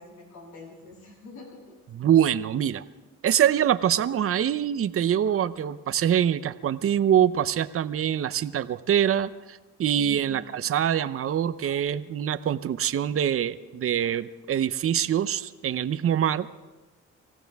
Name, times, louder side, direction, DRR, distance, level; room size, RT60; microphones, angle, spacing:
voice 1, 0.0-1.8 9.9-10.4, left 3 dB, 85° left, -3 dB, 7.7 m, -46 dB
voice 2, 1.9-2.8 3.2-16.5, right 9 dB, 50° right, 12 dB, 0.7 m, -24 dB
25.5 x 16.0 x 3.5 m, 1.1 s
cardioid pair, 90°, 30 cm